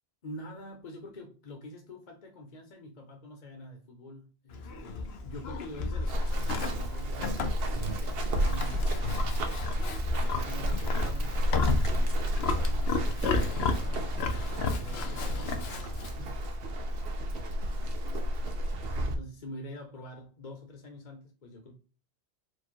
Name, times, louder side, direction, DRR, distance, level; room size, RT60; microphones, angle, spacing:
voice 1, 0.2-9.0 10.1-16.4 18.1-18.2 18.9-21.7, left 1 dB, 45° left, 1.0 m, -46 dB
Livestock farm animals working animals, 4.5-16.2, left 4 dB, 75° left, 1.0 m, -34 dB
Run, 6.1-19.1, equal, 65° right, 0.9 m, -31 dB
4.7 x 2.2 x 4.5 m
omnidirectional pair, 1.1 m